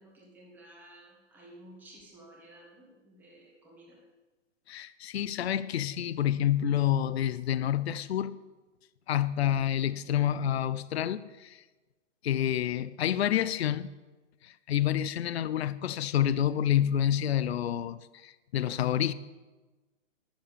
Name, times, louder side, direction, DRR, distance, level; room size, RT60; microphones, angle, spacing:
voice 1, 0.0-4.0, right 1 dB, 5° right, 1.5 m, -53 dB
voice 2, 4.7-8.3 9.1-11.6 12.2-13.9 14.4-19.1, left 10 dB, 55° left, 0.5 m, -28 dB
10.5 x 7.1 x 8.5 m
hypercardioid pair, 170°, 39 cm